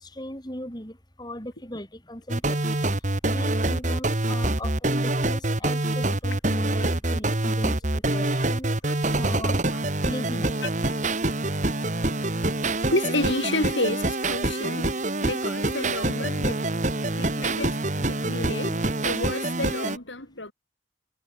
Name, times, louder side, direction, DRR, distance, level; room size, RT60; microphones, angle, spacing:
voice 1, 0.0-2.6 3.3-7.8 8.1-8.7 9.2-9.6 10.0-10.5, left 1 dB, 20° left, 5.7 m, -38 dB
sound 1, 2.3-20.0, right 2 dB, 40° right, 1.9 m, -25 dB
voice 2, 8.8-9.2 9.7-9.8 12.9-15.0 15.2-16.6 17.1-20.5, left 2 dB, 80° left, 6.9 m, -30 dB
head